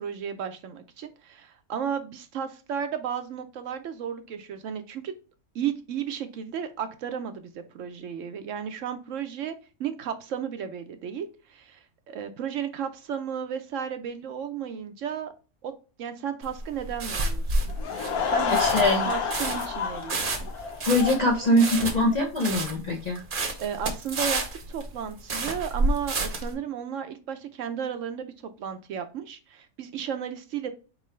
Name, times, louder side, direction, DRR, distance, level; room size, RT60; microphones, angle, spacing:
voice 1, 0.0-5.1 5.5-15.3 15.6-15.7 16.0-17.7 18.2-18.6 19.1-20.5 23.6-24.4 24.7-30.7, right 8 dB, 70° right, 0.9 m, -34 dB
sound 1, 16.4-26.5, right 2 dB, 45° right, 0.9 m, -30 dB
Laughter / Crowd, 17.7-22.2, left 6 dB, 90° left, 1.4 m, -29 dB
voice 2, 18.6-19.1 20.8-23.2, left 1 dB, 45° left, 0.5 m, -23 dB
4.5 x 3.7 x 3.1 m
omnidirectional pair, 1.5 m